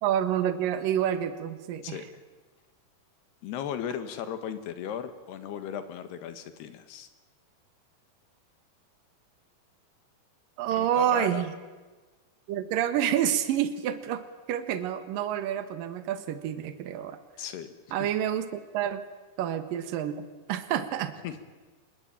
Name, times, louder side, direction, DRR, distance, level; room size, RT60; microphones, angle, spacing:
voice 1, 0.0-2.0 10.6-11.5 12.5-17.2 17.9-19.0 19.4-21.1, right 10 dB, 65° right, 10 dB, 3.0 m, -28 dB
voice 2, 3.4-7.1 10.7-11.5 17.4-18.1 21.2-21.4, left 9 dB, 85° left, 10 dB, 3.7 m, -36 dB
26.0 x 21.5 x 8.9 m, 1.3 s
omnidirectional pair, 4.6 m